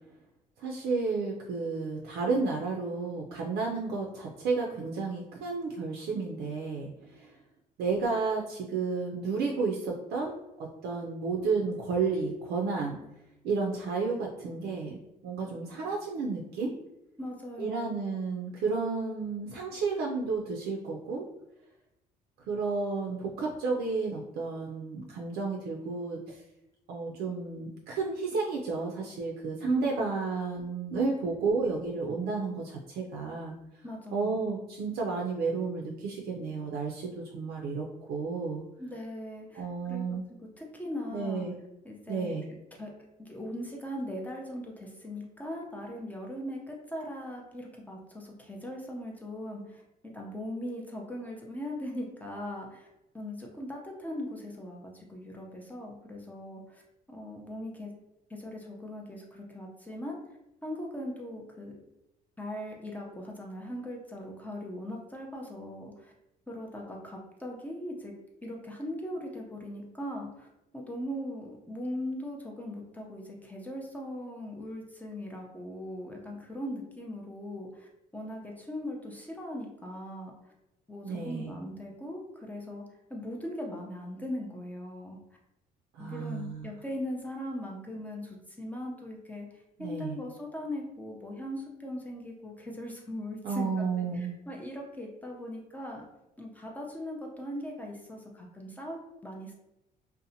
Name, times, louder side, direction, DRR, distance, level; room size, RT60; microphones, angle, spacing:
voice 1, 0.6-7.4 7.8-13.0 13.4-15.0 15.2-16.7 17.6-21.2 22.5-26.4 26.9-33.6 34.1-38.6 39.5-40.3 41.1-41.5 42.1-42.5 81.0-81.5 85.9-86.7 89.8-90.2 93.4-94.3, right 4 dB, 70° right, -1 dB, 0.4 m, -32 dB
voice 2, 17.2-18.0 29.6-30.1 33.8-34.4 38.8-40.0 40.4-41.5 41.8-42.3 42.8-42.9 43.2-52.9 53.1-56.8 57.1-57.9 58.3-60.2 60.6-61.8 62.4-66.1 66.5-68.1 68.4-70.5 70.7-80.5 80.9-82.8 83.1-85.2 86.0-89.5 89.8-96.1 96.4-99.5, left 1 dB, 10° left, -1 dB, 0.5 m, -39 dB
2.6 x 2.1 x 2.7 m, 0.90 s
cardioid pair, 110°, 17 cm